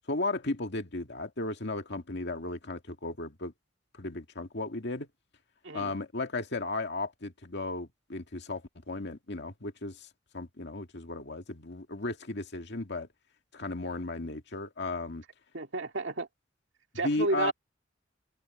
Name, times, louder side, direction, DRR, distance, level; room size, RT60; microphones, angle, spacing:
voice 1, 0.1-3.5 4.0-5.1 5.7-10.1 10.3-13.1 13.5-15.2 17.0-17.5, left 2 dB, 65° left, 2.1 m, -35 dB
voice 2, 15.5-16.3 16.9-17.5, right 2 dB, 70° right, 2.5 m, -31 dB
head